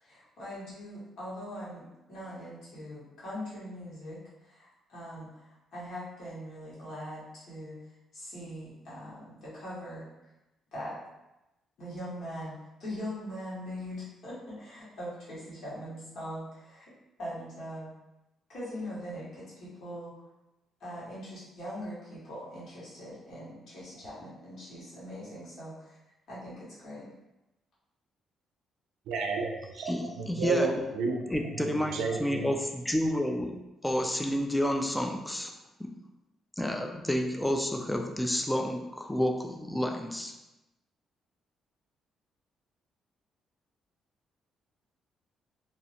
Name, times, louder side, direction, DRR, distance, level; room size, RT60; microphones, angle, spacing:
voice 1, 0.0-4.2 4.4-7.8 8.1-10.1 10.7-11.0 11.8-16.9 17.2-17.9 18.5-20.1 20.8-26.0 26.3-27.1, equal, 65° left, -9 dB, 1.5 m, -41 dB
voice 2, 29.1-29.9 30.2-31.3 31.6-32.5, right 4 dB, 85° right, 2 dB, 0.3 m, -31 dB
voice 3, 29.8-30.7 31.3-33.5 33.8-35.5 35.8-35.9 36.6-40.3, left 1 dB, 10° left, 3 dB, 0.3 m, -30 dB
2.8 x 2.0 x 2.8 m, 0.95 s
cardioid pair, 90°, 0 cm